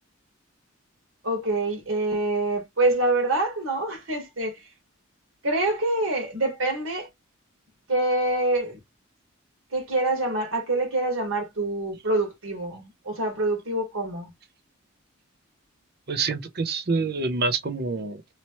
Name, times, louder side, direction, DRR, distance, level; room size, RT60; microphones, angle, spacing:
voice 1, 1.2-4.7 5.4-7.1 7.9-8.8 9.7-14.3, right 2 dB, 75° right, 1.5 m, -26 dB
voice 2, 16.1-18.2, right 4 dB, 50° right, 0.6 m, -26 dB
3.0 x 2.9 x 3.0 m
head